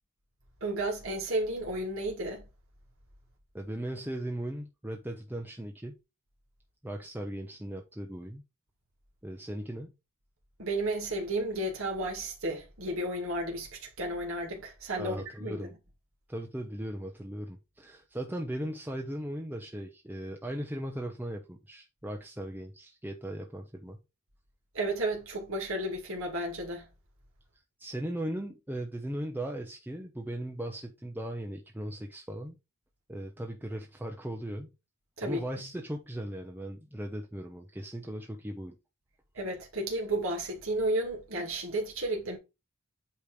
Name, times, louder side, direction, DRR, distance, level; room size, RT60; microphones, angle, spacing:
voice 1, 0.6-2.4 10.6-15.7 24.7-26.9 35.2-35.4 39.3-42.4, right 1 dB, 70° right, 2.2 m, -32 dB
voice 2, 3.5-6.0 6.8-8.4 9.2-9.9 15.0-15.7 16.3-24.0 27.8-32.6 33.1-34.7 35.2-38.8, right 1 dB, 10° right, 0.8 m, -38 dB
8.5 x 3.2 x 4.9 m
head